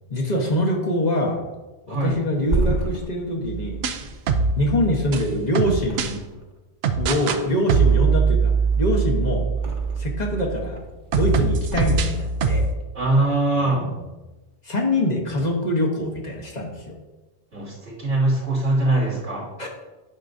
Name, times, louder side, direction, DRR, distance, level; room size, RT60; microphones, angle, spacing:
voice 1, 0.1-1.4 1.9-3.8 4.5-6.2 7.0-9.5 10.0-10.8 11.1-12.7 13.6-14.0 14.6-16.9 19.6-19.7, left 1 dB, 40° left, 0 dB, 1.3 m, -24 dB
voice 2, 1.9-2.2 12.9-13.9 17.5-19.5, right 2 dB, 90° right, -7 dB, 2.8 m, -22 dB
Thump thud, 2.1-5.4 5.8-6.6 6.9-8.3 8.7-10.2 10.6-11.1 11.6-12.6 13.0-13.2, right 2 dB, 45° right, 1.1 m, -31 dB
sound 1, 3.4-6.1 6.8-7.4 7.7-10.7 11.1-12.7, right 5 dB, 75° right, 0.9 m, -22 dB
9.6 x 6.1 x 2.6 m, 1.1 s
omnidirectional pair, 1.1 m